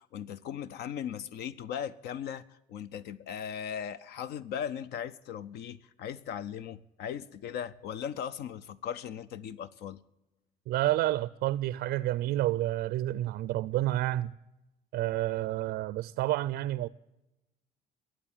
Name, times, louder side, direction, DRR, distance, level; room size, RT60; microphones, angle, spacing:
voice 1, 0.0-10.0, left 8 dB, 75° left, 0.6 m, -38 dB
voice 2, 10.7-14.3 14.9-16.9, right 15 dB, 80° right, 0.4 m, -29 dB
14.0 x 8.7 x 8.9 m
cardioid pair, 110°, 17 cm